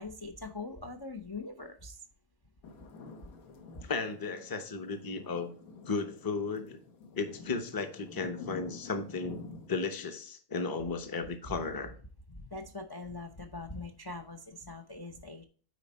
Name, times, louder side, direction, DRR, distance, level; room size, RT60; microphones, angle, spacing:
voice 1, 0.0-2.0 12.4-15.4, left 3 dB, 40° left, 5 dB, 0.3 m, -42 dB
sound 1, 2.6-9.7, left 4 dB, 70° left, 1.4 m, -48 dB
voice 2, 3.8-5.5 5.9-6.8 7.2-9.4 9.7-11.9, left 4 dB, 20° left, 7 dB, 0.7 m, -35 dB
9.5 x 4.3 x 4.1 m, 0.42 s
omnidirectional pair, 1.6 m